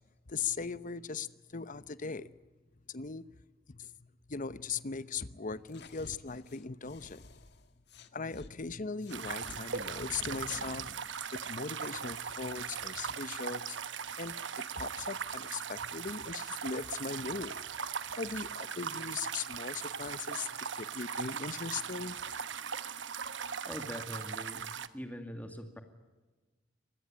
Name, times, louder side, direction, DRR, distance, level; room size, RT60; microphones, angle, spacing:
voice 1, 0.3-2.3 2.9-3.3 3.7-3.9 4.3-7.2 8.1-10.9 11.3-13.8 14.2-17.6 18.2-22.2, left 5 dB, 45° left, 0.9 m, -39 dB
sound 1, 5.7-8.5 9.0-11.1, left 2 dB, 65° left, 1.6 m, -51 dB
sound 2, 9.1-24.9, right 7 dB, 70° right, 1.2 m, -39 dB
voice 2, 23.6-24.7 24.9-25.8, equal, 10° left, 2.3 m, -42 dB
25.0 x 20.0 x 8.9 m
head